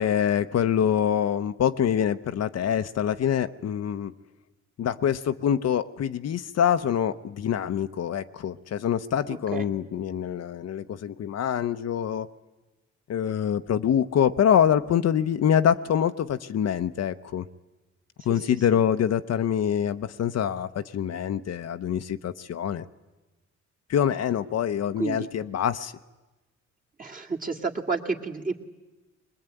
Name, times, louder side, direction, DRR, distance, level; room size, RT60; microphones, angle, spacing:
voice 1, 0.0-4.1 4.8-12.3 13.1-17.5 18.3-22.9 23.9-25.9, left 9 dB, 55° left, 10 dB, 0.9 m, -25 dB
voice 2, 9.3-9.7 18.2-18.4 18.7-18.8 25.0-25.3 27.0-28.5, right 4 dB, 30° right, 1 dB, 2.3 m, -31 dB
22.0 x 20.5 x 9.1 m, 1.1 s
cardioid pair, 90°, 30 cm